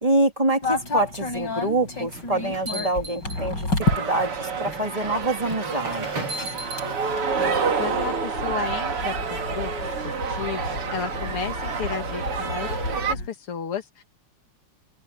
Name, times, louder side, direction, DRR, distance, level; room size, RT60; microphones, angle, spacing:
voice 1, 0.0-3.7 4.0-6.3, right 1 dB, 15° right, 3.0 m, -25 dB
sound 1, 0.6-13.3, left 2 dB, 50° left, 8.1 m, -32 dB
sound 2, 2.1-3.9 4.7-4.8 5.8-6.9, right 2 dB, 70° right, 7.5 m, -35 dB
sound 3, 3.8-13.1, right 5 dB, 90° right, 3.4 m, -28 dB
voice 2, 7.4-9.7 10.0-12.7 13.1-14.0, left 7 dB, 85° left, 2.9 m, -33 dB
open air
omnidirectional pair, 2.4 m